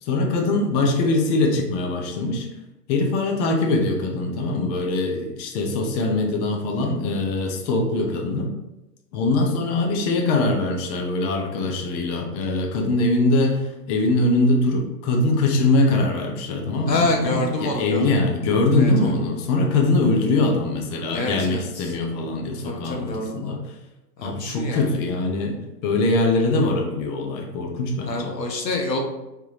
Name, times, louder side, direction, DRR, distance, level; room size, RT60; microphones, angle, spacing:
voice 1, 0.0-2.5 2.9-8.5 9.1-23.6 24.2-28.4, left 2 dB, 25° left, 2 dB, 0.6 m, -22 dB
voice 2, 16.9-18.0 18.8-19.1 21.1-21.9 22.6-23.6 24.2-24.9 28.1-29.0, left 2 dB, 85° left, 2 dB, 1.2 m, -27 dB
4.9 x 3.4 x 2.9 m, 0.98 s
hypercardioid pair, 115°, 48 cm